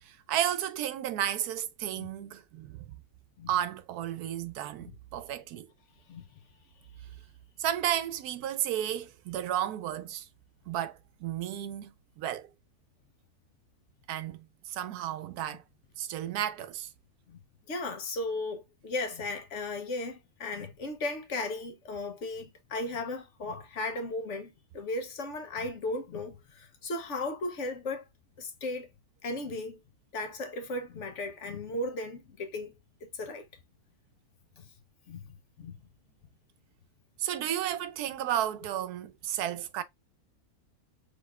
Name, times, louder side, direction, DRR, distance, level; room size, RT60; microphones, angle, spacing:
voice 1, 0.0-2.8 3.5-5.7 7.6-10.3 10.7-12.5 14.1-15.6 16.0-16.9 37.2-39.8, right 11 dB, 90° right, 1.1 m, -33 dB
voice 2, 17.7-28.0 28.4-28.9 29.2-29.8 30.1-32.7 33.0-33.5 34.6-34.7 35.1-35.3 35.6-35.8, left 2 dB, 60° left, 1.0 m, -36 dB
5.1 x 3.5 x 2.3 m
omnidirectional pair, 1.6 m